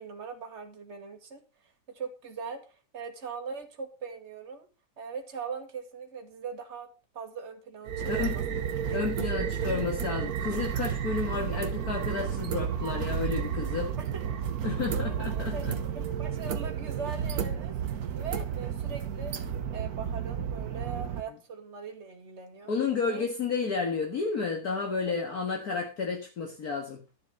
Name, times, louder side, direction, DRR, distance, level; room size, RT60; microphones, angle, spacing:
voice 1, 0.0-1.4 1.9-4.7 5.0-6.9 7.1-8.4 8.9-9.7 14.0-14.2 14.9-15.7 15.9-17.8 18.1-19.4 19.7-22.7 23.1-23.2, right 5 dB, 40° right, 4 dB, 2.1 m, -40 dB
sound 1, 7.9-21.2, right 8 dB, 60° right, 1.4 m, -32 dB
voice 2, 8.0-14.0 14.6-15.8 22.7-27.0, left 5 dB, 55° left, 1 dB, 2.2 m, -32 dB
12.0 x 7.4 x 5.2 m, 0.31 s
omnidirectional pair, 2.0 m